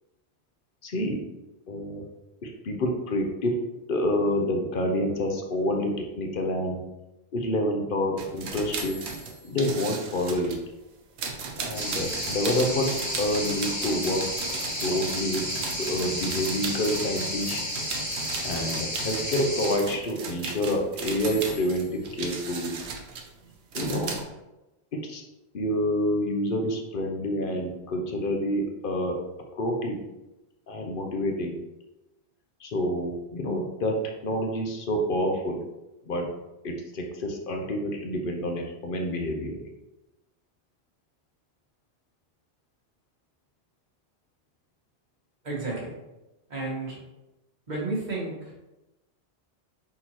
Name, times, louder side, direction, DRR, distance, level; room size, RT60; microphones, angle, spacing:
voice 1, 0.8-1.2 1.7-2.0 2.4-6.8 7.3-9.1 9.4-10.6 11.6-14.3 14.8-17.6 18.4-22.8 23.7-24.1 24.9-25.2 25.5-29.2 29.5-30.0 30.7-31.6 32.6-35.6 36.1-36.3 36.6-39.6, left 1 dB, 55° left, 2 dB, 0.9 m, -28 dB
sound 1, 8.2-10.6 11.2-24.2, right 4 dB, 85° right, 1.0 m, -36 dB
sound 2, 11.7-19.8, left 1 dB, 20° left, 0.9 m, -32 dB
voice 2, 45.4-45.9 46.5-47.0 47.7-48.5, right 2 dB, 45° right, -5 dB, 1.4 m, -31 dB
4.3 x 3.7 x 3.0 m, 0.98 s
omnidirectional pair, 1.1 m